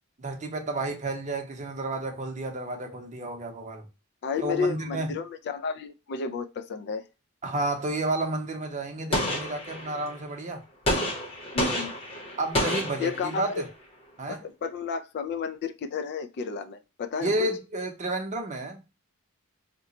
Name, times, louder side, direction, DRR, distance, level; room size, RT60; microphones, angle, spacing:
voice 1, 0.2-3.9 4.4-5.1 7.4-10.6 12.4-13.7 14.2-14.4 17.2-18.8, right 2 dB, 35° right, 0.7 m, -31 dB
voice 2, 4.2-7.0 11.5-11.9 13.0-13.6 14.3-17.3, left 5 dB, 50° left, 0.3 m, -32 dB
Gunshot gunfire, 9.1-10.2 10.9-13.6, left 1 dB, 25° left, 0.9 m, -29 dB
2.9 x 2.1 x 3.7 m
head